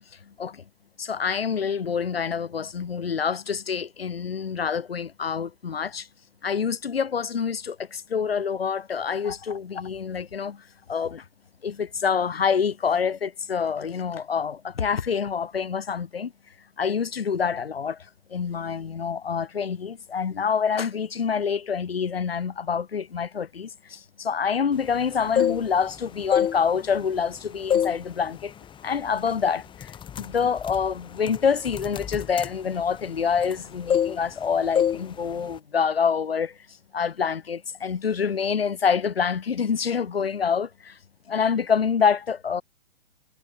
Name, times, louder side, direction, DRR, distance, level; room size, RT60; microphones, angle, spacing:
voice 1, 1.0-6.1 6.4-10.6 10.9-11.2 11.6-16.3 16.8-18.0 18.3-28.5 28.8-29.9 30.2-36.5 36.9-41.0 41.3-42.6, left 6 dB, 85° left, 4.4 m, -26 dB
sound 1, 25.1-25.9 26.2-27.3 27.7-28.0 28.4-28.7 29.3-29.4 29.8-33.6 33.9-34.5 34.8-35.0 35.3-35.6, left 9 dB, 15° left, 2.4 m, -26 dB
hypercardioid pair, 135°, 29 cm